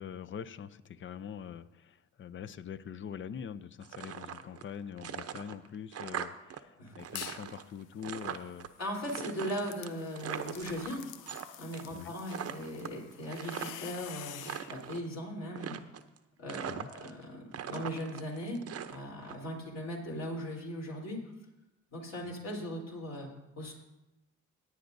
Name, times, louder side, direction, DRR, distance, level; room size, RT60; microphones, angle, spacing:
voice 1, 0.0-8.7 11.9-12.1 16.7-16.9, left 8 dB, 40° left, 14 dB, 0.5 m, -44 dB
sound 1, 3.8-4.7 5.0-6.6 6.9-8.7 9.1-11.4 11.7-12.0 12.3-13.9 14.3-15.1 15.5-16.2 16.5-17.2 17.5-19.3, right 9 dB, 50° right, 0.7 m, -41 dB
sound 2, 7.0-7.5 7.9-14.7, left 12 dB, 90° left, 0.5 m, -48 dB
voice 2, 8.8-11.0 11.6-14.4 14.7-15.8 16.4-18.6 18.9-21.2 21.9-23.3 23.6-23.7, equal, 60° left, -1 dB, 3.6 m, -38 dB
18.0 x 9.3 x 2.7 m, 0.95 s
cardioid pair, 90°, 30 cm